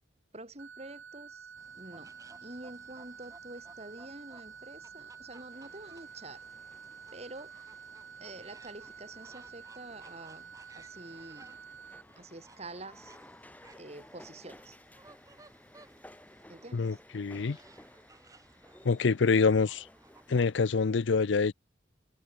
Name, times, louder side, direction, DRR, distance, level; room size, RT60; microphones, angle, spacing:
voice 1, 0.3-2.1 2.4-6.4 7.1-7.5 8.2-11.6 12.2-13.2 13.8-14.8 16.5-17.0, right 2 dB, 35° right, 3.7 m, -47 dB
sound 1, 0.6-12.0, right 6 dB, 80° right, 1.6 m, -49 dB
sound 2, 1.6-20.4, right 2 dB, 15° right, 6.0 m, -59 dB
sound 3, 5.5-20.5, left 1 dB, 10° left, 7.0 m, -57 dB
voice 2, 16.7-17.6 18.8-19.9 20.3-21.5, left 4 dB, 70° left, 0.5 m, -26 dB
head